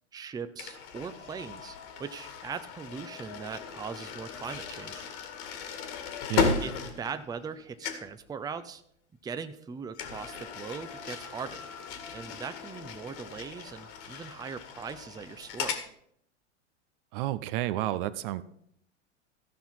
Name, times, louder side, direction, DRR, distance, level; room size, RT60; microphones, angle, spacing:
voice 1, 0.1-5.0 6.6-8.8 9.2-11.7 12.1-15.7, right 6 dB, 10° right, 10 dB, 0.6 m, -40 dB
sound 1, 0.6-7.6 7.8-8.2 9.9-15.9, left 5 dB, 50° left, 2.0 m, -36 dB
voice 2, 17.1-18.4, right 15 dB, 50° right, 15 dB, 0.6 m, -30 dB
14.5 x 5.7 x 5.6 m, 0.69 s
hypercardioid pair, 95°, 36 cm